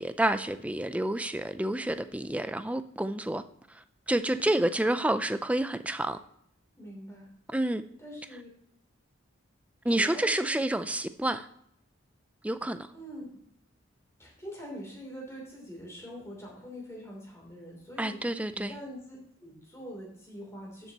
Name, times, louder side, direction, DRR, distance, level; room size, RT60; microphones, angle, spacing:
voice 1, 0.0-3.4 3.7-6.2 7.5-7.8 9.8-11.5 12.4-12.9 18.0-18.7, right 1 dB, 5° right, 0.4 m, -29 dB
voice 2, 4.2-4.9 6.8-7.3 8.0-8.5 9.8-10.6 12.9-13.3 14.2-18.2 18.5-20.9, equal, 15° left, 3.1 m, -44 dB
12.0 x 7.3 x 2.9 m
head